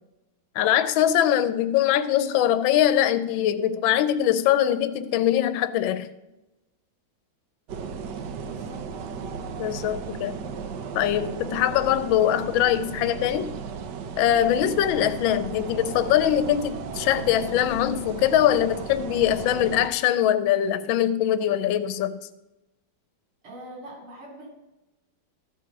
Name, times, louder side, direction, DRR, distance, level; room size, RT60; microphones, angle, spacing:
voice 1, 0.6-6.1 9.6-10.4 10.9-13.5 14.2-22.2, left 11 dB, 75° left, 1.4 m, -22 dB
sound 1, 7.7-19.9, right 5 dB, 65° right, 1.2 m, -35 dB
voice 2, 8.5-8.8 23.4-24.5, right 1 dB, 90° right, 3.7 m, -42 dB
14.0 x 4.8 x 6.2 m
omnidirectional pair, 2.2 m